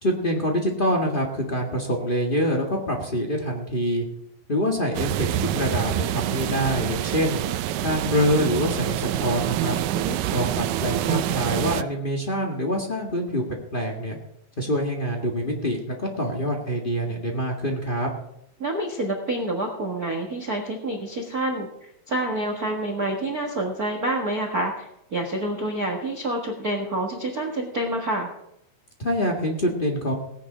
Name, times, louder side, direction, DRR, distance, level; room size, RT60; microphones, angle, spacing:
voice 1, 0.0-4.0 4.5-7.4 7.8-9.8 10.3-13.4 13.7-14.2 14.6-18.1 29.0-30.1, equal, 60° left, 0 dB, 0.5 m, -25 dB
sound 1, 4.9-11.8, right 12 dB, 80° right, 2.0 m, -26 dB
voice 2, 18.6-28.3, right 1 dB, 50° right, 3 dB, 1.1 m, -28 dB
18.0 x 9.9 x 5.0 m, 0.79 s
omnidirectional pair, 4.3 m